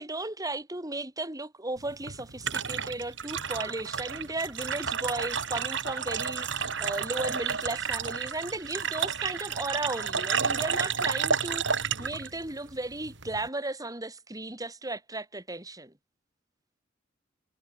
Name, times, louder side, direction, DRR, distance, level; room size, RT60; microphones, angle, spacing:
voice 1, 0.0-15.9, right 2 dB, 20° right, 4.1 m, -35 dB
sound 1, 1.8-13.5, right 6 dB, 70° right, 3.2 m, -31 dB
head